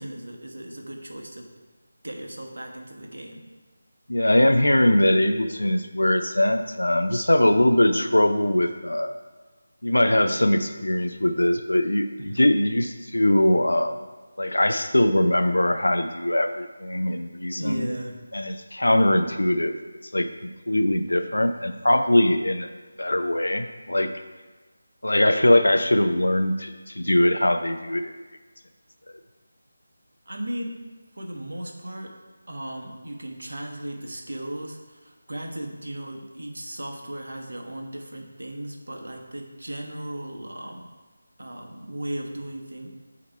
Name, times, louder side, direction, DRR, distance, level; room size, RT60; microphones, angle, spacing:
voice 1, 0.0-1.5 2.0-3.4 12.2-12.5 17.5-18.3 30.3-30.8 31.2-32.2 32.5-40.9 41.4-42.9, right 1 dB, 65° right, 1 dB, 1.1 m, -36 dB
voice 2, 4.1-9.2 9.8-14.0 14.4-17.9 18.3-19.7 20.1-20.3 20.7-22.7 23.0-24.1 25.0-28.1, left 1 dB, 80° left, 8 dB, 0.5 m, -21 dB
8.4 x 3.0 x 4.5 m, 1.3 s
figure-of-eight pair, 160°, 0 cm